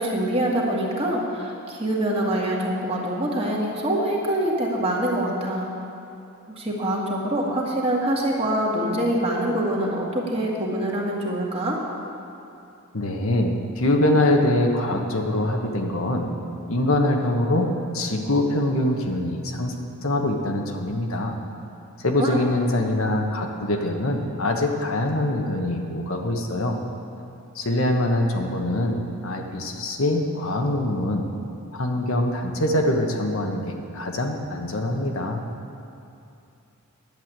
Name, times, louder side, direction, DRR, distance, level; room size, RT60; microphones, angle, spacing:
voice 1, 0.0-5.7 6.6-11.8 22.2-22.4, right 1 dB, 25° right, -3 dB, 1.9 m, -25 dB
voice 2, 12.9-16.3 16.7-19.7 20.0-21.4 22.0-26.8 27.5-31.3 31.7-35.4, left 1 dB, 70° left, 2 dB, 1.3 m, -24 dB
11.0 x 7.9 x 9.0 m, 2.7 s
head